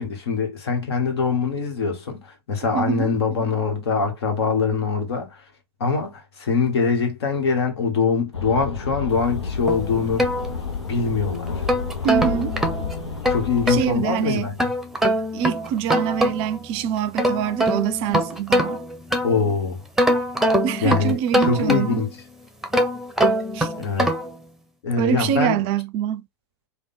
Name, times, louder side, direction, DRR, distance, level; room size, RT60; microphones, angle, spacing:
voice 1, 0.0-5.4 5.8-10.3 10.9-11.6 13.3-14.6 19.2-19.8 20.8-22.2 23.8-24.1 24.8-25.7, left 5 dB, 70° left, 1.4 m, -23 dB
voice 2, 2.7-3.1 12.0-12.6 13.7-14.5 15.3-18.8 20.6-22.0 23.5-23.7 25.0-26.2, right 9 dB, 40° right, 0.5 m, -24 dB
sound 1, 8.3-13.9, left 5 dB, 90° left, 0.8 m, -30 dB
sound 2, 9.7-11.0 11.5-13.9 14.6-16.6 17.0-19.5 20.0-22.1 22.6-24.4, equal, ahead, 0.7 m, -23 dB
3.5 x 2.3 x 4.1 m
hypercardioid pair, 100°, 14 cm